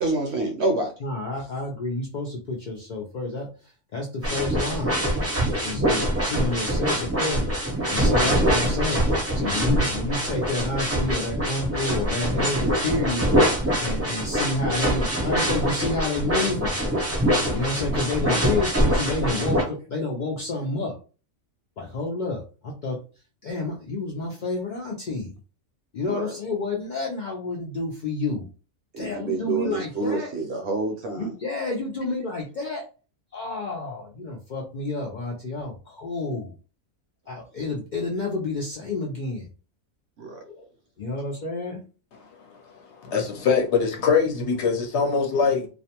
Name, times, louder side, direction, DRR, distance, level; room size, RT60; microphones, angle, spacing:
voice 1, 0.0-0.9 26.1-26.3 28.9-31.3 40.2-40.4, right 3 dB, 65° right, 0.8 m, -27 dB
voice 2, 1.0-3.5 3.9-5.0 5.6-13.3 13.8-16.8 17.5-21.0 21.8-23.0 23.4-25.3 25.9-28.5 29.0-30.3 31.2-32.8 33.3-36.6 37.3-39.5 40.4-40.6 41.0-41.8, left 2 dB, 85° left, 0.4 m, -29 dB
sound 1, 4.2-19.6, equal, 20° right, 0.4 m, -24 dB
voice 3, 42.5-45.7, left 5 dB, 65° left, 0.8 m, -23 dB
2.4 x 2.1 x 2.8 m
omnidirectional pair, 1.4 m